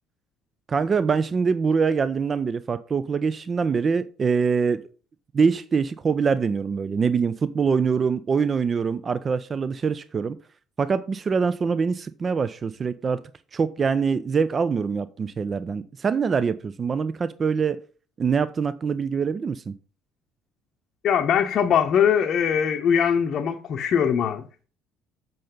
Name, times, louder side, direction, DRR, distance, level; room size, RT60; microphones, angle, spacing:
voice 1, 0.7-4.8 5.3-10.4 10.8-13.2 13.5-17.8 18.2-19.7, right 5 dB, 35° right, 0.4 m, -24 dB
voice 2, 21.0-24.4, left 8 dB, 50° left, 0.7 m, -21 dB
7.6 x 5.4 x 5.3 m
figure-of-eight pair, 55°, 0 cm